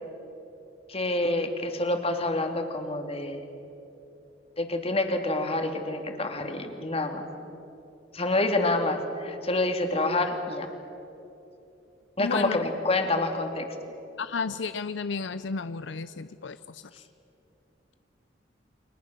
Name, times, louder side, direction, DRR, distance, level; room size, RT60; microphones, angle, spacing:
voice 1, 0.9-3.4 4.6-7.2 8.1-10.7 12.2-13.7, left 2 dB, 35° left, 5 dB, 2.5 m, -27 dB
voice 2, 12.2-12.6 14.2-17.0, left 4 dB, 75° left, 13 dB, 0.6 m, -33 dB
30.0 x 25.0 x 6.8 m, 3.0 s
head